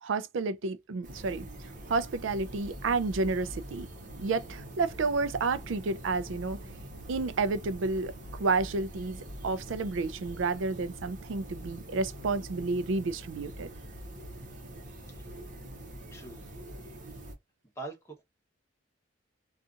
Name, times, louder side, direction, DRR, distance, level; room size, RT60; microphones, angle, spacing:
voice 1, 0.0-3.9 4.2-6.6 7.1-8.1 8.4-13.7, right 3 dB, 75° right, 0.4 m, -30 dB
sound 1, 1.0-17.3, right 1 dB, 40° right, 0.8 m, -44 dB
voice 2, 16.1-16.4 17.8-18.2, right 3 dB, 15° left, 1.0 m, -42 dB
2.7 x 2.4 x 2.4 m
head